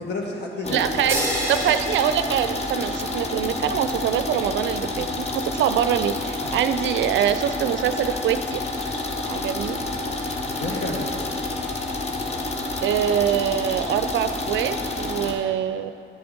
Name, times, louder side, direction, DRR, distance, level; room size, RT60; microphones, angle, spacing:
voice 1, 0.0-1.2 3.6-3.8 6.4-6.6 10.4-11.3, left 2 dB, 60° left, 0 dB, 1.6 m, -31 dB
sound 1, 0.6-15.3, left 2 dB, 30° left, 1.0 m, -29 dB
voice 2, 0.7-8.6 9.3-9.8 12.8-15.9, right 10 dB, 70° right, 11 dB, 0.4 m, -24 dB
sound 2, 1.1-3.2, right 1 dB, 15° right, 1.3 m, -30 dB
9.9 x 6.8 x 3.9 m, 2.5 s
cardioid pair, 90°, 20 cm